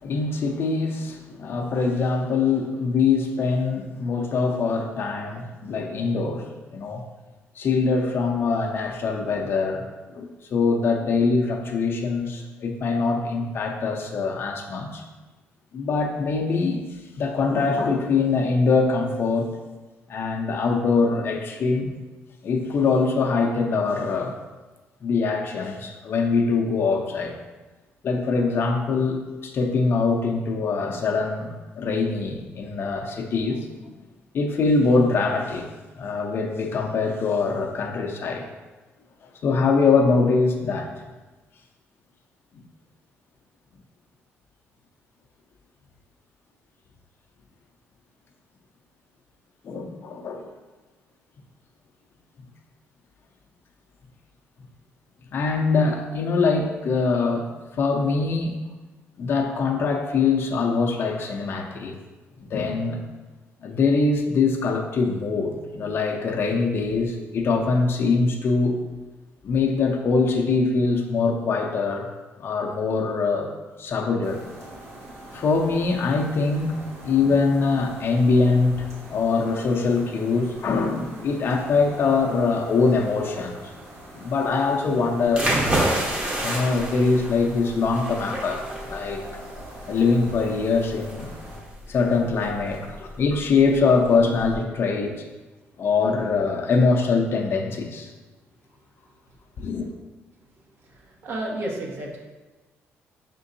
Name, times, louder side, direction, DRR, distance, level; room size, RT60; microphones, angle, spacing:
voice 1, 0.0-7.0 7.6-9.9 10.1-15.0 15.7-16.8 17.2-19.5 20.1-21.9 22.4-24.4 25.0-27.3 28.0-33.9 34.3-35.7 35.9-38.5 39.4-40.9 42.6-42.7 49.6-50.5 55.3-58.6 59.2-61.9 62.4-63.0 63.6-68.8 69.4-72.1 72.4-73.5 73.8-74.4 75.3-83.6 84.1-85.5 86.4-88.6 88.9-89.2 89.9-91.3 91.9-95.2 95.8-98.1 99.6-99.9, left 4 dB, 55° left, 2 dB, 0.6 m, -23 dB
sound 1, 74.2-91.6, right 1 dB, 65° right, 1.4 m, -43 dB
sound 2, 85.3-94.6, right 1 dB, 25° right, 1.0 m, -29 dB
voice 2, 92.5-92.9 95.7-95.8 98.4-99.6 99.9-100.1 100.4-102.2, right 1 dB, 50° right, 0 dB, 0.9 m, -36 dB
5.1 x 3.7 x 2.6 m, 1.2 s
cardioid pair, 105°, 5 cm